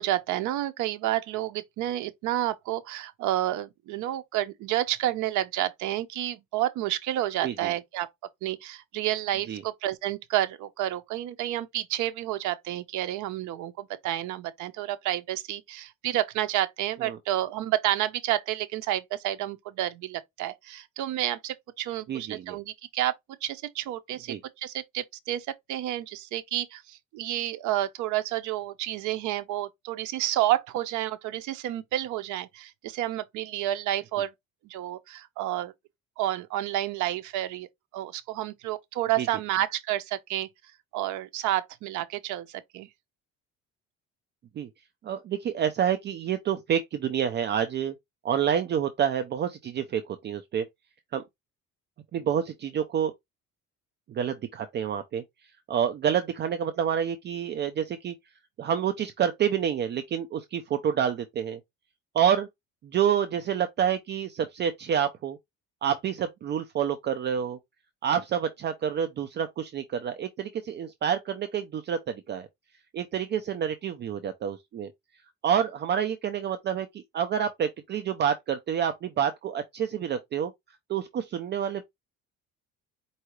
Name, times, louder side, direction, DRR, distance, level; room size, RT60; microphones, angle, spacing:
voice 1, 0.0-8.1 8.4-34.3 34.6-35.7 36.2-37.7 37.9-40.5 40.9-42.9, right 13 dB, 70° right, 0.7 m, -30 dB
voice 2, 7.4-7.7 9.5-9.6 17.0-17.2 22.1-22.6 24.3-24.4 39.2-39.3 44.6-44.7 45.0-47.9 48.2-50.6 51.1-51.2 52.1-53.1 54.1-55.2 55.7-58.1 58.6-61.6 62.1-62.5 62.8-65.4 65.8-67.6 68.0-72.5 72.9-74.9 75.4-80.5 80.9-81.8, right 8 dB, 35° right, 0.5 m, -28 dB
4.7 x 2.7 x 3.0 m
cardioid pair, 145°, 31 cm